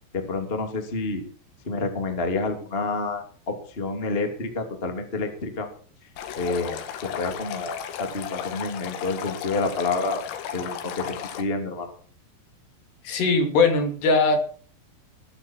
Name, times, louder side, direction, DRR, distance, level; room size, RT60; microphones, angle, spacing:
voice 1, 0.1-1.2 1.6-5.7 6.4-10.2 10.5-11.9, left 3 dB, 15° left, 5 dB, 2.1 m, -29 dB
Stream, 6.2-11.4, left 9 dB, 85° left, 4.6 m, -34 dB
voice 2, 13.0-14.4, left 3 dB, 60° left, 5 dB, 4.8 m, -20 dB
21.0 x 12.5 x 4.6 m, 0.43 s
omnidirectional pair, 5.8 m